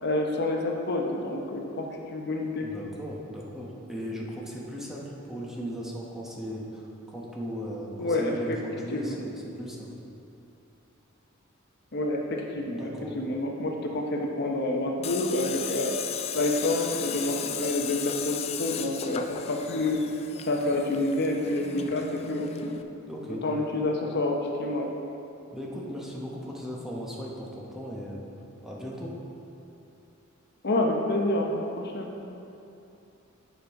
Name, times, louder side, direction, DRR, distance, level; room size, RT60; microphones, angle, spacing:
voice 1, 0.0-2.7 8.0-8.6 8.9-9.2 11.9-15.9 16.3-20.0 20.5-22.7 23.3-24.9 30.6-32.1, left 2 dB, 55° left, 1 dB, 0.8 m, -28 dB
voice 2, 2.6-9.9 12.7-13.1 23.1-23.4 25.5-28.2 28.6-29.1, equal, ahead, -4 dB, 1.0 m, -37 dB
Tools, 15.0-22.8, left 8 dB, 30° left, 0.3 m, -36 dB
9.5 x 5.3 x 4.6 m, 2.8 s
head